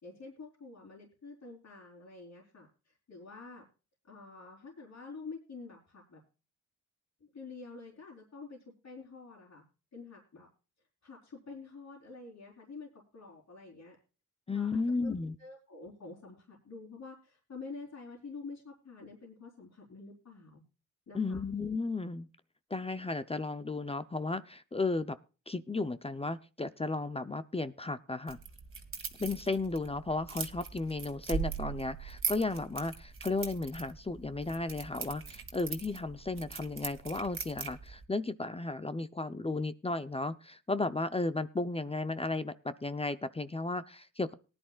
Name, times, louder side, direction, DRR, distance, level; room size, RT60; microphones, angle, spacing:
voice 1, 0.0-3.6 4.1-6.2 7.2-9.6 9.9-10.5 11.0-14.0 14.5-20.6 21.1-21.4, left 4 dB, 60° left, -4 dB, 3.9 m, -48 dB
voice 2, 14.5-15.3 21.1-22.3 22.7-25.2 25.5-28.4 29.2-44.3, left 3 dB, 20° left, 12 dB, 0.7 m, -34 dB
sound 1, 28.3-38.0, right 6 dB, 40° right, 1.7 m, -41 dB
19.0 x 10.5 x 2.4 m, 0.33 s
cardioid pair, 70°, 32 cm